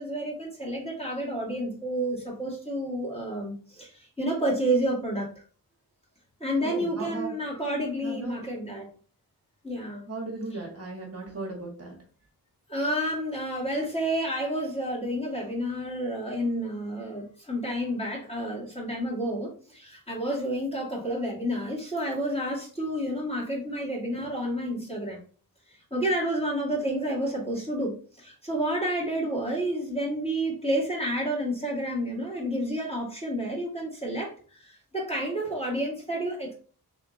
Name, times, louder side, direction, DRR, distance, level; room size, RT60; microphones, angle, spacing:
voice 1, 0.0-5.4 6.4-8.9 9.6-10.1 10.5-10.6 12.7-25.2 25.7-36.5, right 1 dB, 15° left, -5 dB, 2.0 m, -30 dB
voice 2, 6.6-7.3 8.0-8.4 10.1-11.9, right 2 dB, 40° right, -1 dB, 1.2 m, -36 dB
3.4 x 2.8 x 3.8 m, 0.42 s
wide cardioid pair, 85°, 38 cm